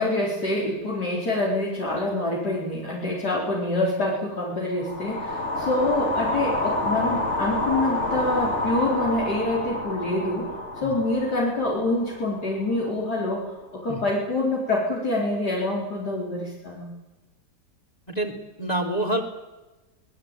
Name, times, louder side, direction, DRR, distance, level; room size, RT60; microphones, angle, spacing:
voice 1, 0.0-10.5 10.8-16.9, left 2 dB, 65° left, -4 dB, 4.9 m, -26 dB
sound 1, 4.8-13.0, left 2 dB, 40° left, 3.2 m, -29 dB
voice 2, 18.6-19.2, right 1 dB, 20° left, 0 dB, 3.3 m, -26 dB
25.5 x 19.5 x 9.0 m, 1.1 s
omnidirectional pair, 1.9 m